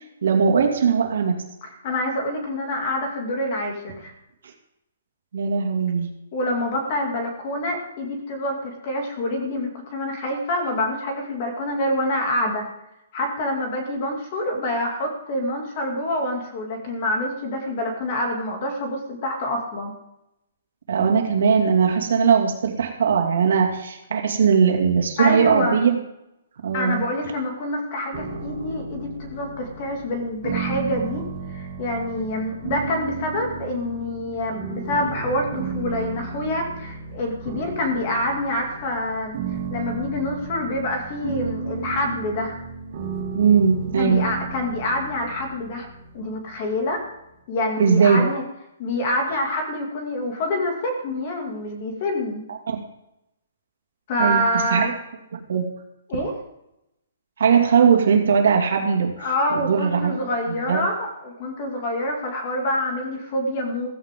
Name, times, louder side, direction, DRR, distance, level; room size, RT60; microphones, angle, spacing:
voice 1, 0.2-1.4 5.3-6.1 20.9-26.0 26.6-27.0 43.3-44.3 47.8-48.3 52.7-52.8 54.2-54.9 55.3-55.7 57.4-59.1 59.5-60.2 60.5-60.8, right 6 dB, 55° right, 1 dB, 2.6 m, -19 dB
voice 2, 1.6-4.1 6.3-12.7 13.1-19.9 25.2-25.8 26.7-39.4 39.7-42.6 44.0-45.9 46.1-47.0 47.5-48.4 48.8-52.4 54.1-54.9 56.1-56.3 59.2-63.9, left 1 dB, 25° left, 2 dB, 2.5 m, -26 dB
sound 1, 28.1-47.1, right 5 dB, 35° right, 3.2 m, -34 dB
15.5 x 15.0 x 3.8 m, 0.87 s
hypercardioid pair, 180°, 0 cm